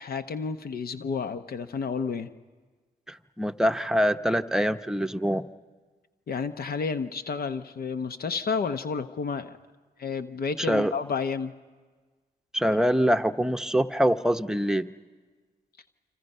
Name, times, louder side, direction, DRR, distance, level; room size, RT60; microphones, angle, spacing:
voice 1, 0.0-2.3 6.3-9.6 10.0-11.5, left 5 dB, 65° left, 9 dB, 0.9 m, -31 dB
voice 2, 3.1-5.4 10.7-10.9 12.5-14.9, equal, 5° right, 8 dB, 0.8 m, -24 dB
28.5 x 26.0 x 5.5 m, 1.4 s
cardioid pair, 55°, 17 cm